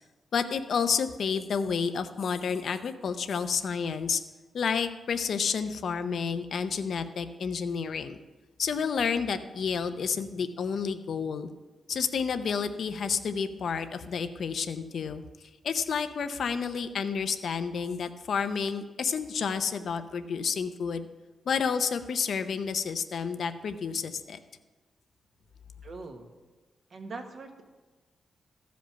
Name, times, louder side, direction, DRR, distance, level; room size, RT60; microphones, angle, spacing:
voice 1, 0.3-4.2 4.5-8.2 8.6-11.5 11.9-15.2 15.6-21.1 21.5-24.4, left 6 dB, 65° left, 10 dB, 0.6 m, -30 dB
voice 2, 25.8-26.3 26.9-27.6, right 3 dB, 50° right, 4 dB, 1.3 m, -41 dB
14.5 x 5.2 x 5.8 m, 1.2 s
wide cardioid pair, 135°, 0 cm